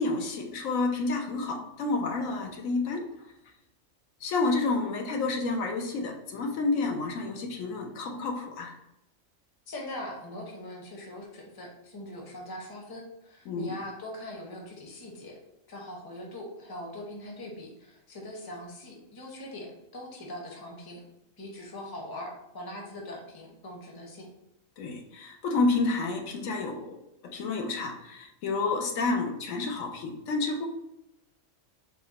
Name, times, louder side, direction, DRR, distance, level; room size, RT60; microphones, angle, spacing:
voice 1, 0.0-3.1 4.2-8.8 13.5-13.7 24.8-27.0 27.3-30.7, left 3 dB, 80° left, 3 dB, 1.1 m, -29 dB
voice 2, 9.7-15.3 15.7-21.0 21.4-24.3, left 1 dB, 20° left, 0 dB, 0.6 m, -41 dB
4.7 x 2.1 x 4.0 m, 0.86 s
omnidirectional pair, 1.4 m